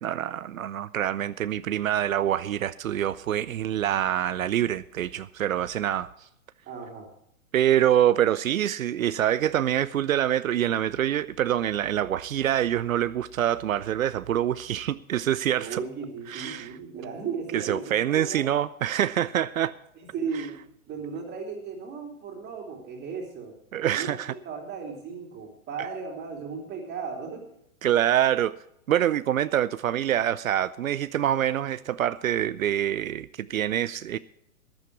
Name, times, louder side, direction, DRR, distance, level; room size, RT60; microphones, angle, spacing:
voice 1, 0.0-6.1 7.5-15.8 16.3-16.7 17.5-19.7 23.7-24.3 27.8-28.5 28.9-34.2, right 11 dB, 75° right, 0.6 m, -25 dB
voice 2, 6.6-7.1 15.6-18.5 20.0-20.6 20.9-23.6 23.9-27.5, right 5 dB, 25° right, 3.0 m, -36 dB
14.0 x 11.5 x 4.6 m
hypercardioid pair, 125°, 41 cm